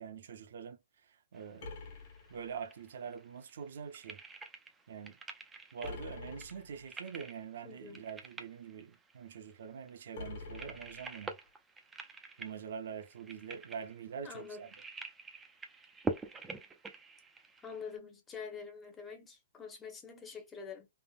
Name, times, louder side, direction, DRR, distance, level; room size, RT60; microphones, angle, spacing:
voice 1, 0.0-1.7 2.3-4.2 4.9-5.2 5.7-11.3 12.4-14.7, right 7 dB, 60° right, 0.6 m, -45 dB
sound 1, 1.3-18.0, right 4 dB, 10° right, 0.3 m, -46 dB
sound 2, 1.6-3.0 5.8-7.0 10.1-11.5, left 3 dB, 45° left, 1.3 m, -46 dB
voice 2, 7.6-8.0 14.2-14.6 17.6-20.9, left 5 dB, 10° left, 0.7 m, -46 dB
3.4 x 2.0 x 2.3 m
hypercardioid pair, 165°, 0 cm